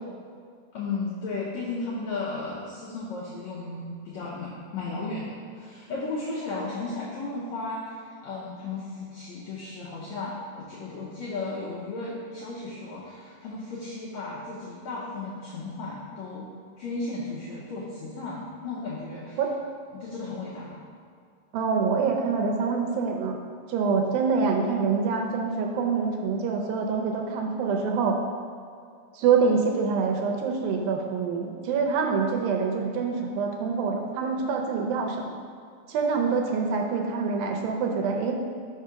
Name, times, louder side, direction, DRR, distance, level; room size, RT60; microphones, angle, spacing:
voice 1, 0.7-16.5 16.8-19.4 19.9-20.8, left 3 dB, 75° left, -7 dB, 1.7 m, -35 dB
voice 2, 21.5-23.4 23.7-28.2 29.1-35.4 35.9-38.3, right 5 dB, 80° right, 1 dB, 2.4 m, -25 dB
5.5 x 4.8 x 5.6 m, 2.2 s
omnidirectional pair, 4.2 m